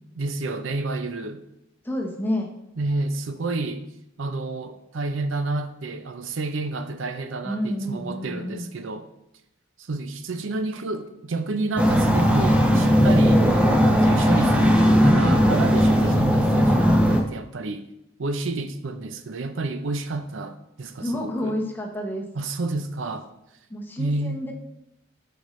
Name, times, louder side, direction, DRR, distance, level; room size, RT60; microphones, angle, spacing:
voice 1, 0.1-1.4 2.8-3.8 4.2-9.0 9.8-17.8 18.2-21.6 22.4-23.3 24.0-24.4, right 3 dB, 65° right, 0.6 m, -30 dB
voice 2, 1.8-2.5 7.4-8.7 21.0-22.2 23.7-24.5, left 1 dB, 10° left, 1.0 m, -29 dB
sound 1, 11.8-17.2, equal, 5° right, 0.6 m, -18 dB
8.0 x 5.1 x 3.1 m
head